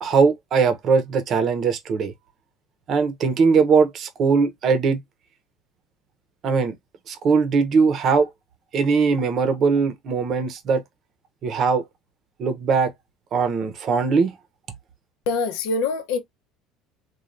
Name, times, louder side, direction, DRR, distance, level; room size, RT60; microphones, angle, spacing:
voice 1, 0.0-2.1 2.9-5.0 6.4-6.7 7.1-8.3 8.7-10.8 11.4-11.8 12.4-12.9 13.3-14.3, right 5 dB, 40° right, 0.7 m, -20 dB
voice 2, 15.3-16.2, left 4 dB, 75° left, 0.7 m, -24 dB
3.2 x 2.3 x 2.5 m
cardioid pair, 150°, 0 cm